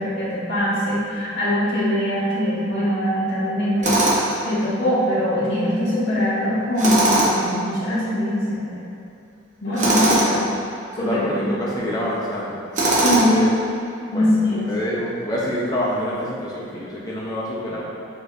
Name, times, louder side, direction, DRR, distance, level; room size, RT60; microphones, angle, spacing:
voice 1, 0.0-8.6 9.6-10.4 10.9-11.7 13.0-13.4 14.1-14.7, equal, 60° left, -13 dB, 1.1 m, -22 dB
Tools, 3.8-4.4 6.8-7.5 9.8-10.3 12.7-13.4, right 1 dB, 40° right, 0.8 m, -19 dB
voice 2, 9.7-10.4 11.0-13.5 14.1-17.8, left 1 dB, 20° left, -6 dB, 0.8 m, -27 dB
6.4 x 3.1 x 2.5 m, 2.7 s
head